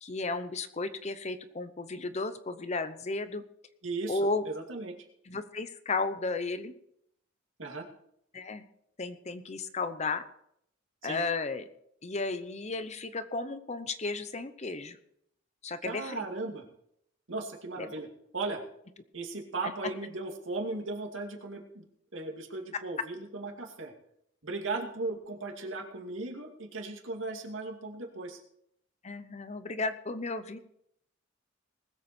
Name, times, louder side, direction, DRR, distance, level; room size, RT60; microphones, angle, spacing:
voice 1, 0.0-3.4 4.1-4.4 5.3-6.7 8.3-8.6 9.0-10.2 11.0-11.6 12.0-15.0 15.6-16.2 17.8-17.9 19.6-19.7 29.0-30.6, left 3 dB, 35° left, 11 dB, 0.7 m, -34 dB
voice 2, 3.8-4.9 7.6-7.9 11.0-11.2 15.8-16.6 17.3-18.1 18.3-18.6 19.1-21.9 22.1-23.9 24.4-28.4, right 3 dB, 70° right, 2 dB, 2.4 m, -37 dB
20.0 x 8.1 x 4.4 m, 0.73 s
head